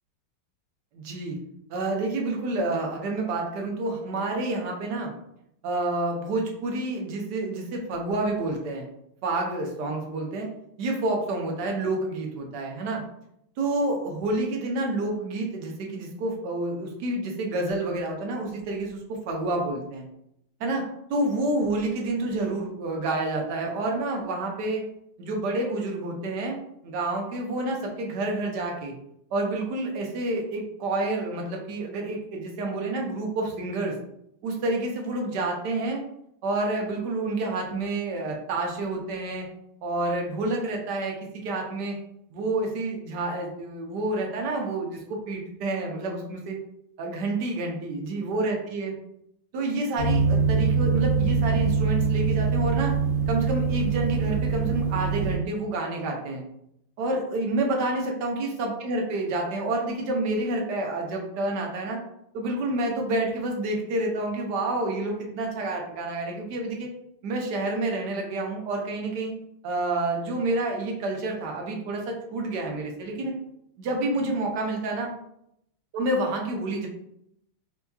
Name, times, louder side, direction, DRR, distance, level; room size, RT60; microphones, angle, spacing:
voice 1, 0.9-1.4 1.7-5.1 5.6-8.9 9.2-10.5 10.8-13.0 13.6-20.0 20.6-20.8 21.1-24.8 25.2-26.6 26.8-28.9 29.3-34.0 34.4-36.0 36.4-39.5 39.8-42.0 42.3-46.6 47.0-48.9 49.5-52.9 53.3-56.4 57.0-62.0 62.3-66.9 67.2-69.3 69.6-73.3 73.8-75.1 75.9-76.9, right 2 dB, 65° right, 1 dB, 1.1 m, -28 dB
sound 1, 50.0-55.4, right 5 dB, 40° left, 1.1 m, -24 dB
4.5 x 2.7 x 2.3 m, 0.76 s
omnidirectional pair, 2.4 m